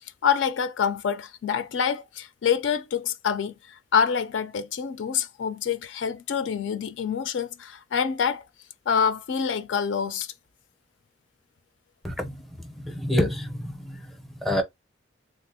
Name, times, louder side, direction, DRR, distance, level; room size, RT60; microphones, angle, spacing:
voice 1, 0.2-8.4 8.9-10.3, left 7 dB, 70° left, 0.4 m, -26 dB
voice 2, 12.0-14.6, left 1 dB, ahead, 0.5 m, -28 dB
3.4 x 2.4 x 2.7 m
head